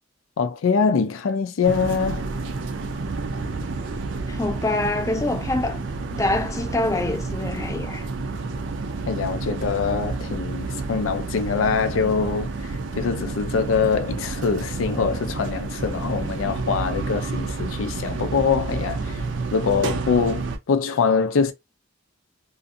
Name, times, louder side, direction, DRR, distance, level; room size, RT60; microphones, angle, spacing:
voice 1, 0.4-2.2 9.1-19.2 19.5-21.5, left 5 dB, 80° left, 0.4 m, -24 dB
sound 1, 1.6-20.6, right 3 dB, 65° right, 0.5 m, -30 dB
voice 2, 4.3-5.8 6.1-8.0, left 2 dB, 15° left, 0.4 m, -25 dB
2.5 x 2.5 x 2.5 m
head